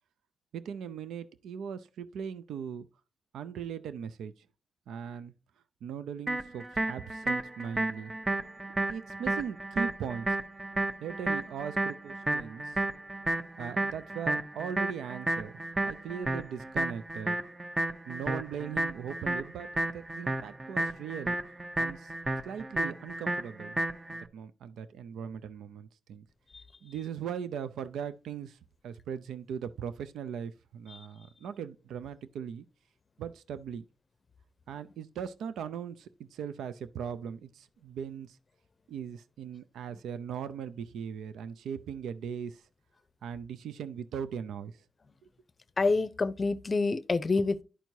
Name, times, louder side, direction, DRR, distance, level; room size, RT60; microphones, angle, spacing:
voice 1, 0.5-2.9 3.3-4.5 4.9-5.3 5.8-8.1 8.9-10.4 11.0-12.8 13.6-15.6 15.8-17.4 18.1-21.4 21.8-22.1 22.4-23.8 24.2-26.3 26.8-32.7 33.2-33.8 34.7-38.4 38.9-42.7 43.2-44.8, right 8 dB, 90° right, 0.4 m, -39 dB
sound 1, 6.3-24.2, right 2 dB, 25° right, 0.8 m, -32 dB
voice 2, 45.8-47.6, left 3 dB, 40° left, 0.6 m, -27 dB
11.0 x 4.5 x 2.7 m
cardioid pair, 65°, 0 cm